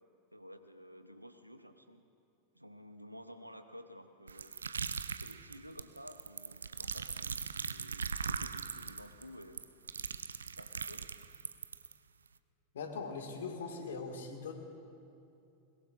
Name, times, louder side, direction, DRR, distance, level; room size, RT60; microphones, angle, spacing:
voice 1, 0.3-2.0 2.5-4.6 5.2-9.7 10.5-11.3, equal, 90° right, 9 dB, 0.8 m, -52 dB
sound 1, 4.3-11.9, right 5 dB, 70° right, 0.4 m, -39 dB
voice 2, 12.7-14.5, left 4 dB, 65° left, 3 dB, 1.9 m, -41 dB
21.5 x 21.0 x 2.5 m, 2.7 s
figure-of-eight pair, 90°, 0 cm